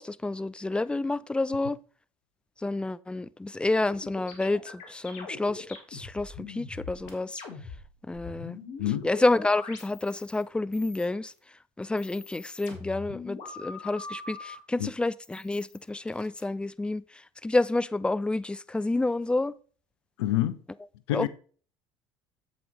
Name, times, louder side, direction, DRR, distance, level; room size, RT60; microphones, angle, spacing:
voice 1, 0.0-1.8 2.6-7.4 8.1-8.6 9.0-11.3 11.8-19.5 21.1-21.3, left 2 dB, 5° left, 0.4 m, -29 dB
sound 1, 3.9-7.8 8.1-10.4 10.7-11.4 11.8-14.6 15.2-16.4, left 4 dB, 60° left, 2.1 m, -42 dB
voice 2, 20.2-20.5 21.1-21.3, left 14 dB, 75° left, 0.6 m, -26 dB
7.6 x 7.4 x 3.4 m
hypercardioid pair, 65°, 14 cm